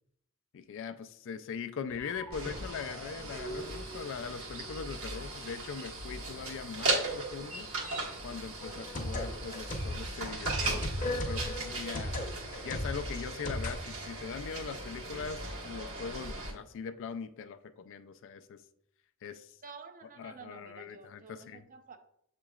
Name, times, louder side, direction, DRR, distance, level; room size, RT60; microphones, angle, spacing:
voice 1, 0.5-7.7 8.2-12.2 12.6-18.6 19.2-19.5 20.2-21.6, left 6 dB, 60° left, 10 dB, 0.3 m, -41 dB
sound 1, 1.9-5.8, right 1 dB, 10° left, 0.5 m, -48 dB
sound 2, 2.3-16.5, right 2 dB, 70° right, 1.2 m, -38 dB
sound 3, 8.6-13.8, left 1 dB, 35° left, 0.8 m, -36 dB
voice 2, 19.6-22.0, right 5 dB, 40° right, 7 dB, 0.5 m, -50 dB
7.2 x 3.0 x 2.3 m, 0.71 s
head